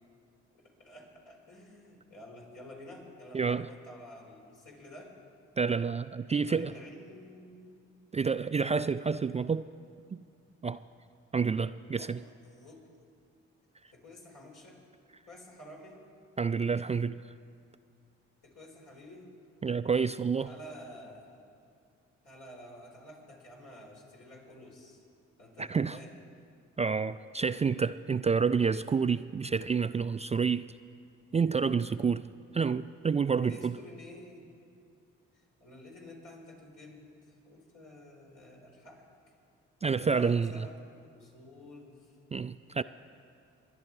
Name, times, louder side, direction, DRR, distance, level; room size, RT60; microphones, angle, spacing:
voice 1, 0.5-5.1 6.3-7.8 12.0-12.9 13.9-14.8 15.3-16.0 18.4-19.3 20.5-21.4 22.2-25.0 25.4-26.1 33.4-34.5 35.6-37.1 37.4-39.0 40.0-42.1, left 1 dB, 70° left, -2 dB, 4.2 m, -50 dB
voice 2, 3.3-3.7 5.6-6.8 8.1-9.7 10.1-10.2 10.6-10.8 11.3-12.2 16.4-17.2 19.6-20.5 25.6-26.0 26.8-30.7 31.3-33.8 39.8-40.7 42.3-42.8, right 5 dB, 20° right, 13 dB, 0.3 m, -29 dB
24.5 x 10.5 x 4.7 m, 2.4 s
hypercardioid pair, 45°, 32 cm